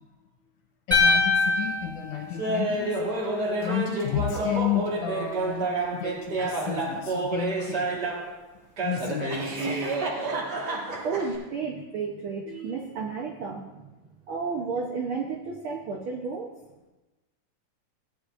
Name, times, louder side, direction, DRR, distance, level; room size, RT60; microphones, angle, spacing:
voice 1, 0.9-3.0 3.6-8.0 8.8-9.8, left 10 dB, 75° left, 1 dB, 2.1 m, -32 dB
sound 1, 0.9-3.2, left 3 dB, 10° right, 0.7 m, -24 dB
Laughter, 2.4-8.3 8.8-11.4, right 2 dB, 40° right, 1.8 m, -29 dB
voice 2, 11.0-13.9 14.3-16.5, right 5 dB, 75° right, 1 dB, 1.2 m, -32 dB
16.5 x 10.0 x 2.5 m, 1.1 s
omnidirectional pair, 3.6 m